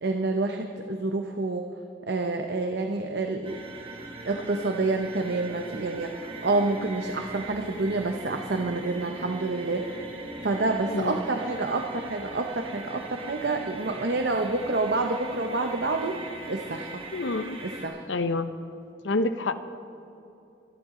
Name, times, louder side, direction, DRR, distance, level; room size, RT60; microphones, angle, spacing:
voice 1, 0.0-1.7 2.1-3.6 4.3-9.9 10.4-16.2 16.5-16.9 17.6-18.0, right 3 dB, 65° right, 5 dB, 0.8 m, -28 dB
sound 1, 3.4-17.9, right 2 dB, 30° right, 1.6 m, -41 dB
voice 2, 10.9-11.2 17.1-17.6 18.1-18.5 19.0-19.6, left 2 dB, 90° left, 11 dB, 0.7 m, -27 dB
25.0 x 11.0 x 3.8 m, 2.9 s
head